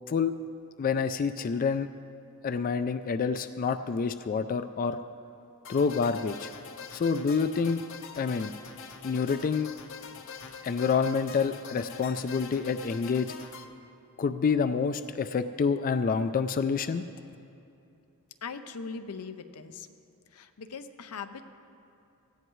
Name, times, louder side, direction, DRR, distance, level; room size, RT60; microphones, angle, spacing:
voice 1, 0.8-1.9 2.4-5.0 5.7-6.5 6.9-7.8 8.2-8.5 9.0-9.7 10.6-13.3 14.2-17.0, left 5 dB, 40° left, 10 dB, 0.3 m, -27 dB
sound 1, 5.6-13.6, left 5 dB, 60° left, 0.8 m, -44 dB
voice 2, 18.4-19.9 20.3-21.4, left 5 dB, 90° left, 9 dB, 0.7 m, -40 dB
17.5 x 14.5 x 3.1 m, 2.7 s
head